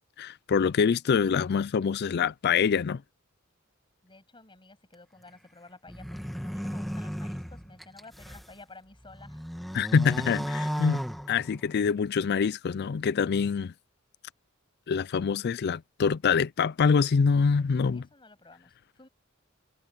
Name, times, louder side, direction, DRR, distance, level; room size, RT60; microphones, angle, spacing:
voice 1, 0.2-3.0 9.7-13.7 14.9-18.0, left 6 dB, 50° left, 0.4 m, -25 dB
voice 2, 4.0-9.4 17.9-19.1, left 3 dB, 25° left, 7.4 m, -52 dB
sound 1, 5.9-8.5 9.0-11.8, equal, ahead, 2.0 m, -35 dB
head